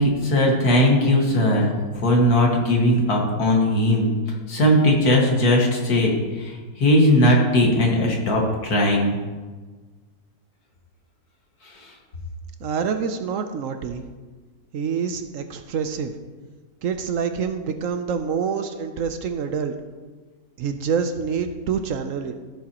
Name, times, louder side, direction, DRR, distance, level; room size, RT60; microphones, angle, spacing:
voice 1, 0.0-4.2 4.5-6.5 6.8-9.1, left 1 dB, 75° left, -1 dB, 2.2 m, -19 dB
voice 2, 12.6-14.0 14.7-16.1 16.8-19.7 20.6-22.4, right 6 dB, 65° right, 8 dB, 0.9 m, -26 dB
15.5 x 7.2 x 2.9 m, 1.3 s
omnidirectional pair, 1.6 m